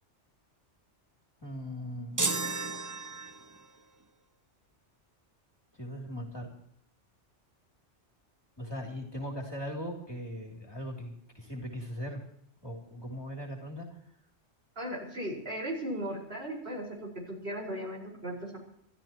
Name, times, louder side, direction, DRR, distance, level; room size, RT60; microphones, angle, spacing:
voice 1, 1.4-2.3 5.7-6.5 8.6-12.2 12.6-14.0, equal, 20° left, 0 dB, 3.0 m, -39 dB
sound 1, 2.2-3.7, right 3 dB, 20° right, 0.6 m, -33 dB
voice 2, 14.7-18.6, equal, 55° right, -2 dB, 5.2 m, -37 dB
28.0 x 13.5 x 3.0 m, 0.71 s
omnidirectional pair, 1.2 m